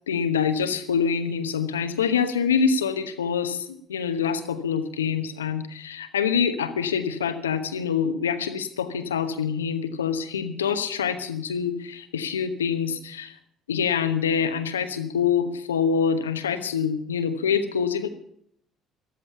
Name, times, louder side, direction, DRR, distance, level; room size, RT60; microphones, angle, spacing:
voice 1, 0.1-13.3 13.7-18.1, left 6 dB, 85° left, 10 dB, 1.0 m, -25 dB
14.5 x 13.0 x 5.7 m, 0.71 s
figure-of-eight pair, 55°, 0 cm